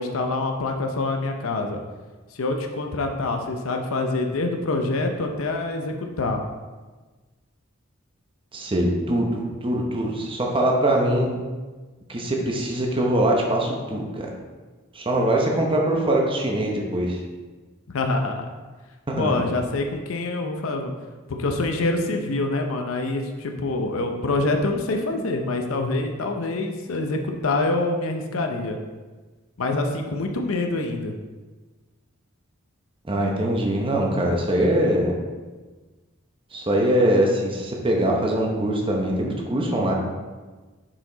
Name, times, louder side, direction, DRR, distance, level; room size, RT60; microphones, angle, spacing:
voice 1, 0.0-1.8 2.3-6.4 17.9-18.5 19.2-20.9 21.4-28.8 29.6-31.1, left 2 dB, 75° left, 4 dB, 0.6 m, -25 dB
voice 2, 8.5-11.3 12.1-14.3 14.9-17.2 19.1-19.4 33.1-35.1 36.5-39.9, right 1 dB, 25° right, -1 dB, 0.8 m, -22 dB
5.8 x 4.9 x 3.9 m, 1.3 s
head